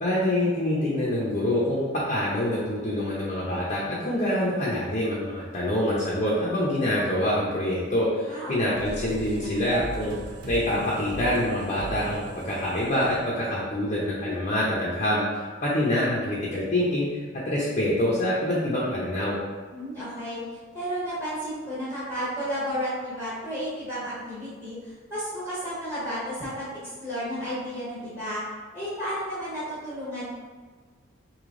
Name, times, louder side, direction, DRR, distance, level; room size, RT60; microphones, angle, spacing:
voice 1, 0.0-10.1 10.5-17.1 17.5-19.4, left 1 dB, 35° left, -7 dB, 0.6 m, -26 dB
voice 2, 8.3-8.9 19.7-28.4 28.7-30.3, equal, 10° right, -11 dB, 1.0 m, -32 dB
sound 1, 8.8-14.1, right 2 dB, 60° right, 0.6 m, -39 dB
3.3 x 2.8 x 3.7 m, 1.5 s
head